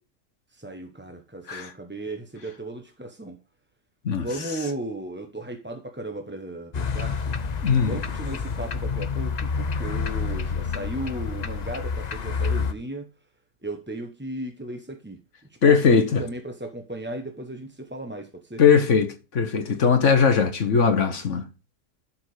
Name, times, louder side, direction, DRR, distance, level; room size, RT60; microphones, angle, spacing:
voice 1, 0.5-3.4 4.1-7.4 7.8-13.1 13.6-15.2 15.7-18.6, right 1 dB, 10° right, 0.8 m, -35 dB
sound 1, 6.7-12.7, left 5 dB, 90° left, 0.3 m, -28 dB
voice 2, 7.6-7.9 15.6-16.2 18.6-21.4, left 6 dB, 45° left, 1.4 m, -20 dB
12.5 x 5.9 x 4.9 m
omnidirectional pair, 1.8 m